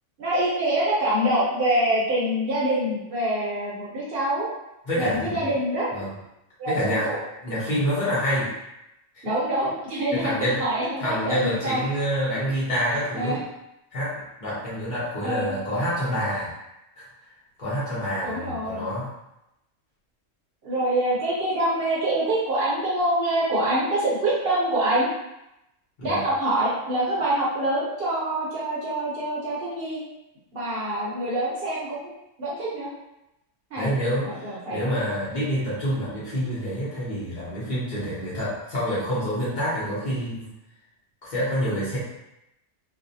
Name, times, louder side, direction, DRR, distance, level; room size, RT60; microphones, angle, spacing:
voice 1, 0.2-4.5 4.9-6.1 6.6-7.2 9.2-11.8 13.1-13.4 15.2-15.5 18.2-18.8 20.6-25.1 26.0-30.0 30.5-32.1 32.4-32.9 33.7-33.9 34.2-34.9, right 1 dB, 55° right, -8 dB, 0.8 m, -25 dB
voice 2, 4.9-5.5 5.9-6.1 6.7-7.1 7.4-8.5 9.1-9.2 10.1-10.6 11.0-13.4 13.9-16.5 17.0-17.1 17.6-19.1 26.0-26.2 33.8-40.5 41.3-42.0, equal, 45° left, -10 dB, 0.8 m, -27 dB
2.4 x 2.0 x 2.6 m, 0.89 s
omnidirectional pair, 1.3 m